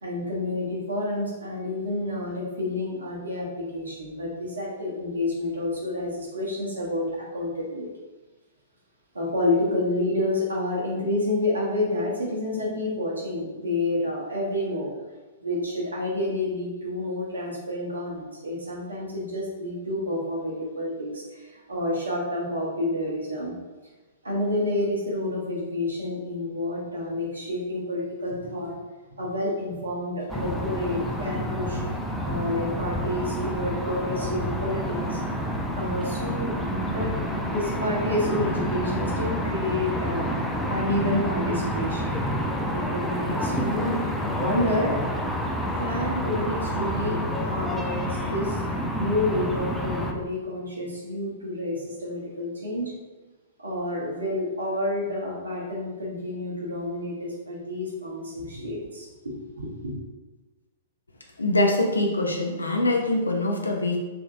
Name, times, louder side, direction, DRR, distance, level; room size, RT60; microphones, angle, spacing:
voice 1, 0.0-7.9 9.1-14.9 15.4-23.5 24.2-28.8 29.1-31.8 32.2-35.2 35.7-36.6 36.9-37.1 37.4-40.3 40.7-42.1 42.7-44.1 44.4-45.0 45.7-52.9 53.6-59.9, left 1 dB, 75° right, -3 dB, 1.0 m, -29 dB
sound 1, 30.3-50.1, equal, 5° left, 0.4 m, -28 dB
voice 2, 61.4-64.0, left 2 dB, 80° left, 1 dB, 0.4 m, -23 dB
3.5 x 2.7 x 2.6 m, 1.2 s
figure-of-eight pair, 105°, 0 cm